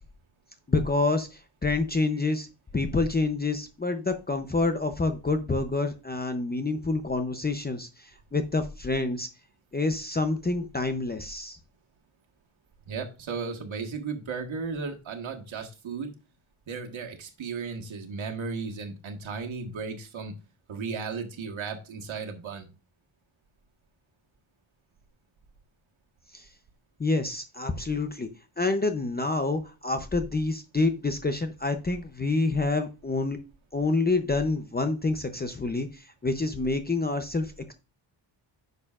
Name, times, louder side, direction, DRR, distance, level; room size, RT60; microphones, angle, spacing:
voice 1, 0.7-2.5 2.7-9.3 9.7-11.6 26.3-26.4 27.0-28.3 28.6-33.4 33.7-37.7, left 3 dB, 20° left, 6 dB, 0.7 m, -27 dB
voice 2, 12.9-16.1 16.7-20.3 20.7-22.7, right 5 dB, 70° right, 4 dB, 1.7 m, -35 dB
10.0 x 6.6 x 2.5 m, 0.30 s
wide cardioid pair, 145°, 49 cm